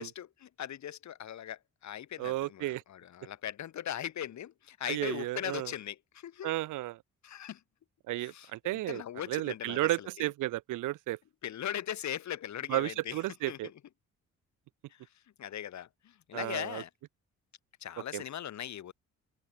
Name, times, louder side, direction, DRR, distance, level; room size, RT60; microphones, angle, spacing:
voice 1, 0.0-6.5 7.2-7.6 8.2-10.3 11.4-13.7 15.4-16.9 17.8-18.9, left 10 dB, 65° left, 4.6 m, -40 dB
voice 2, 2.2-2.8 4.9-5.7 6.4-7.0 8.1-9.0 9.3-11.2 12.7-13.7 16.3-16.8 18.1-18.2, right 16 dB, 90° right, 2.1 m, -33 dB
cardioid pair, 90°, 30 cm